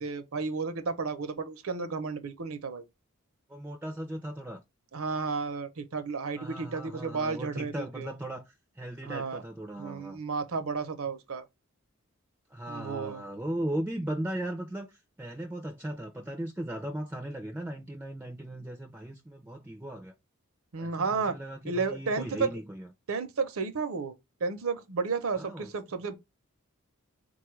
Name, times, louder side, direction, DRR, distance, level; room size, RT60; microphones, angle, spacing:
voice 1, 0.0-2.8 4.9-8.1 9.0-9.4 9.8-11.4 12.7-13.2 20.7-21.4 21.6-22.5 23.1-24.2 24.4-26.1, right 4 dB, 75° right, 0.7 m, -32 dB
voice 2, 3.5-4.6 6.4-10.2 12.5-20.1 20.8-22.9 25.4-25.7, right 1 dB, 10° right, 0.4 m, -37 dB
4.0 x 2.3 x 3.0 m
head